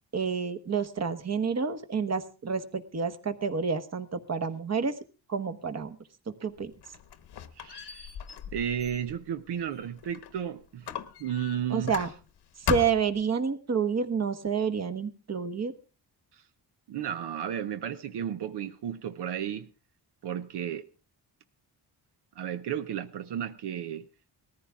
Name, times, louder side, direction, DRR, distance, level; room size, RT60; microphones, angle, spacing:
voice 1, 0.1-5.0 5.3-6.0 6.3-6.7 11.7-12.1 12.6-15.7, right 5 dB, 40° right, 1.3 m, -29 dB
Squeak, 6.6-10.4 10.8-12.4 12.7-13.2, left 9 dB, 80° left, 1.2 m, -37 dB
voice 2, 7.6-8.2 8.5-10.9 11.2-11.9 16.3-16.4 16.9-19.7 20.2-20.9 22.4-24.1, right 9 dB, 85° right, 0.9 m, -33 dB
19.0 x 14.5 x 3.6 m
cardioid pair, 100°, 39 cm